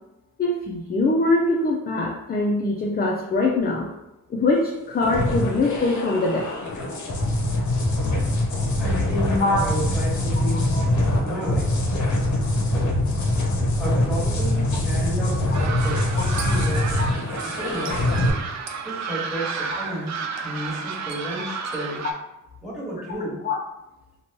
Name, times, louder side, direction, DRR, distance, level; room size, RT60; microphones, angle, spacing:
voice 1, 0.4-3.9 4.3-6.5 9.4-9.7 10.7-10.8 17.0-17.1 23.4-23.6, left 2 dB, 30° left, -2 dB, 0.4 m, -23 dB
sound 1, 5.0-18.3, left 1 dB, 65° left, 0.7 m, -23 dB
voice 2, 8.8-10.7 11.2-11.7 12.7-12.8 13.5-16.9 17.4-17.9 18.8-20.1 20.4-22.0 22.6-23.4, equal, ahead, -7 dB, 1.4 m, -32 dB
sound 2, 15.5-22.1, right 5 dB, 60° right, 0.4 m, -31 dB
2.9 x 2.2 x 2.9 m, 0.94 s
cardioid pair, 80°, 32 cm